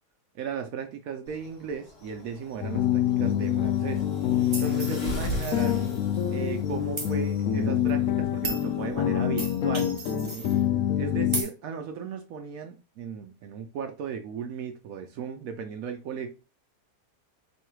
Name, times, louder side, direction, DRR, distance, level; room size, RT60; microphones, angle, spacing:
voice 1, 0.3-4.1 4.6-5.8 6.3-9.9 10.3-10.5 11.0-16.3, right 7 dB, 70° right, 0.9 m, -36 dB
sound 1, 1.3-11.3, right 1 dB, 40° left, 1.2 m, -42 dB
sound 2, 2.6-11.4, left 10 dB, 70° left, 0.8 m, -26 dB
sound 3, 4.5-6.2 7.0-7.1 7.9-8.0 8.4-8.7 9.4-10.6 11.3-11.5, right 3 dB, 35° right, 0.4 m, -36 dB
3.1 x 2.8 x 4.5 m
omnidirectional pair, 1.8 m